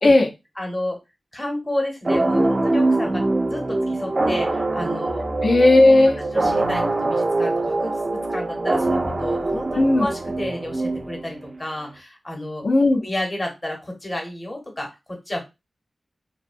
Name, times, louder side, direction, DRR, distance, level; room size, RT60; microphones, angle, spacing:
voice 1, 0.6-1.0 1.3-5.2 6.3-12.6 13.0-15.5, left 1 dB, 20° left, 1 dB, 0.8 m, -31 dB
sound 1, 2.1-11.5, right 2 dB, 35° right, 0.3 m, -23 dB
voice 2, 5.4-6.2 9.8-10.1 12.6-13.0, left 2 dB, 50° left, 3 dB, 0.4 m, -15 dB
2.6 x 2.0 x 2.5 m, 0.24 s
wide cardioid pair, 130°, 0 cm